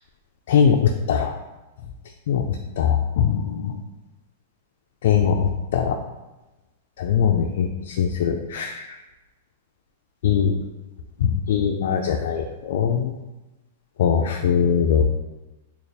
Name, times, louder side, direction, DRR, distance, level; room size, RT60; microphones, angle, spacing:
voice 1, 2.8-3.4 5.0-5.5 5.7-5.9 7.0-7.7 8.0-8.7 10.2-10.5 11.5-13.0 14.0-15.0, left 7 dB, 65° left, 2 dB, 0.3 m, -20 dB
3.3 x 2.4 x 4.0 m, 1.1 s
supercardioid pair, 150°, 0 cm